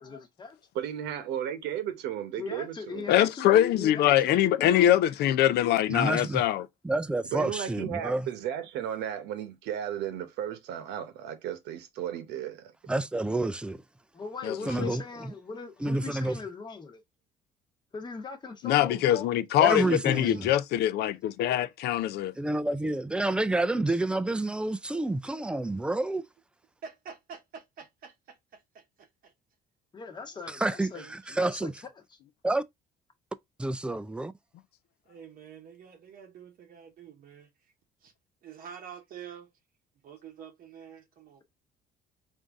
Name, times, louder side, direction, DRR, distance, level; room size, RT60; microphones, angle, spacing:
voice 1, 0.0-0.6 2.4-4.9 14.1-17.0 17.9-19.3 19.6-20.5 29.9-31.0 31.3-31.7, left 5 dB, 25° left, 1.0 m, -40 dB
voice 2, 0.7-3.1 7.3-12.7, right 10 dB, 85° right, 0.9 m, -34 dB
voice 3, 3.1-6.7 14.4-14.9 18.6-22.3, left 12 dB, 75° left, 0.5 m, -23 dB
voice 4, 5.9-6.4 6.8-8.3 12.9-13.8 14.7-15.3 15.8-16.4 19.6-20.5 22.4-26.2 30.5-31.7 32.4-32.6 33.6-34.3, right 2 dB, 5° right, 0.3 m, -29 dB
voice 5, 26.8-29.3 30.9-31.5 35.1-37.7 38.0-38.1 38.4-39.5 40.0-41.4, right 7 dB, 55° right, 0.8 m, -48 dB
3.7 x 2.7 x 3.4 m
cardioid pair, 110°, 17 cm